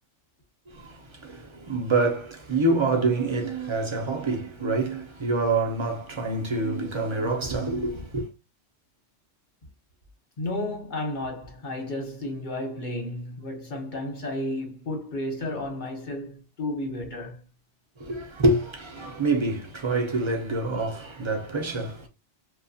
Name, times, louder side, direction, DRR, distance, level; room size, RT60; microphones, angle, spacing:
voice 1, 0.7-8.3 18.0-22.1, right 2 dB, 35° right, 0.4 m, -26 dB
voice 2, 10.4-17.4, left 1 dB, 45° left, 1.0 m, -32 dB
2.8 x 2.3 x 2.6 m
omnidirectional pair, 1.3 m